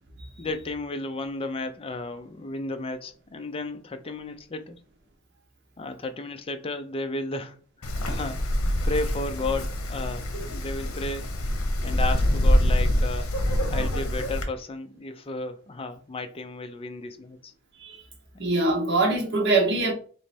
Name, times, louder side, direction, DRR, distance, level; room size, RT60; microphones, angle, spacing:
voice 1, 0.4-4.8 5.8-8.4 8.8-11.3 11.8-13.3 13.7-17.5, left 2 dB, 25° left, 0.4 m, -33 dB
Wind, 7.8-14.4, equal, 80° left, 0.8 m, -25 dB
voice 2, 18.4-19.9, right 2 dB, 55° right, 1.2 m, -23 dB
3.2 x 3.0 x 4.3 m
head